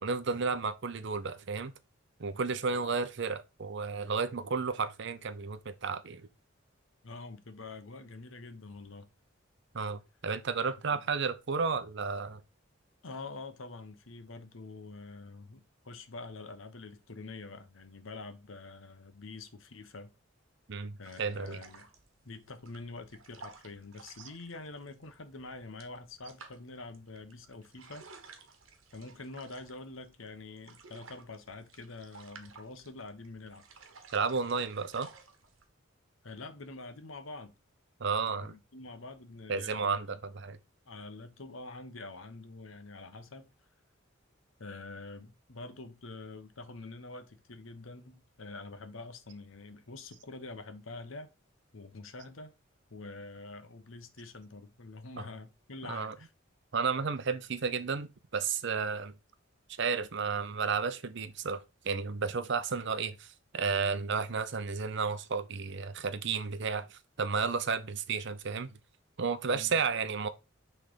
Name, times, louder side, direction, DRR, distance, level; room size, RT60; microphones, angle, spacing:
voice 1, 0.0-1.7 2.2-6.3 9.7-12.4 20.7-21.6 34.1-35.1 38.0-38.5 39.5-40.6 55.2-55.3 55.9-56.1 56.7-59.1 59.8-61.6 61.8-68.7 69.2-70.3, right 5 dB, 60° right, 0.6 m, -32 dB
voice 2, 7.0-9.1 10.9-11.0 13.0-20.1 21.0-21.9 22.2-28.0 28.9-33.7 36.2-37.5 38.5-40.0 40.9-43.5 44.6-51.3 51.7-52.5 52.9-56.3 69.5-69.8, left 3 dB, 80° left, 1.0 m, -46 dB
sound 1, 21.0-35.6, right 4 dB, 85° right, 1.1 m, -55 dB
6.1 x 3.4 x 5.0 m
head